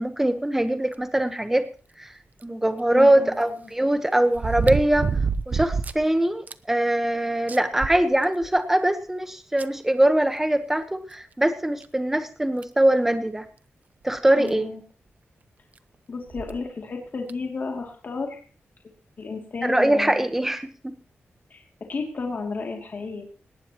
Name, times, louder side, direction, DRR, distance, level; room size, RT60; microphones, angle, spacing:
voice 1, 0.0-1.7 2.0-2.1 2.4-5.1 5.5-13.4 14.0-14.7 19.6-20.9, right 1 dB, 10° right, 9 dB, 1.1 m, -22 dB
sound 1, 2.4-2.5 4.3-6.1 6.5-6.6 7.0-7.1 7.5-8.6 9.6-9.7 11.1-11.2 11.8-11.9 12.6-12.8 14.2-14.3 14.5-14.6 16.3-16.6 17.3-17.4, right 5 dB, 40° right, 0.6 m, -27 dB
voice 2, 2.9-3.6 14.4-14.8 16.1-18.4 19.2-20.2 21.5-21.6 21.9-23.3, left 4 dB, 45° left, 1 dB, 2.6 m, -32 dB
19.0 x 18.0 x 3.0 m, 0.39 s
wide cardioid pair, 175°, 4 cm